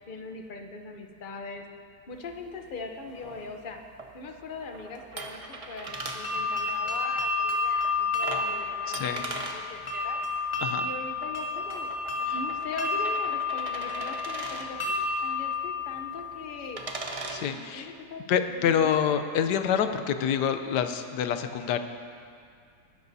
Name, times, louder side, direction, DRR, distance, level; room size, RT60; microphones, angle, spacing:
voice 1, 0.1-1.7 2.1-3.8 4.1-10.2 10.8-11.9 12.1-16.8 17.4-19.0, left 3 dB, 40° left, 4 dB, 0.7 m, -41 dB
sound 1, 2.1-17.4, right 2 dB, 35° right, 0.5 m, -42 dB
sound 2, 5.9-16.7, left 4 dB, 20° left, 1.3 m, -31 dB
voice 2, 8.9-9.2 10.6-10.9 12.3-12.4 17.3-17.9 18.3-21.8, left 8 dB, 80° left, 9 dB, 1.2 m, -27 dB
20.5 x 11.5 x 2.7 m, 2.3 s
omnidirectional pair, 1.8 m